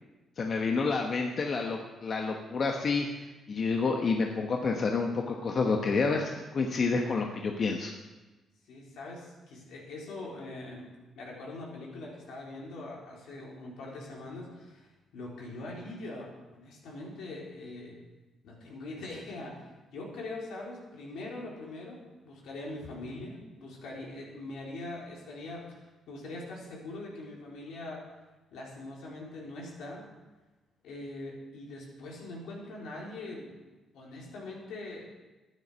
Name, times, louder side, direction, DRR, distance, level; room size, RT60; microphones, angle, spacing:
voice 1, 0.4-7.9, left 4 dB, 50° left, 2 dB, 1.1 m, -29 dB
voice 2, 8.7-10.9 11.2-18.0 18.4-25.8 26.1-28.0 28.5-30.1 30.8-33.6 33.9-35.1, left 2 dB, 85° left, -3 dB, 3.9 m, -42 dB
12.0 x 10.0 x 6.3 m, 1.2 s
cardioid pair, 90°, 0 cm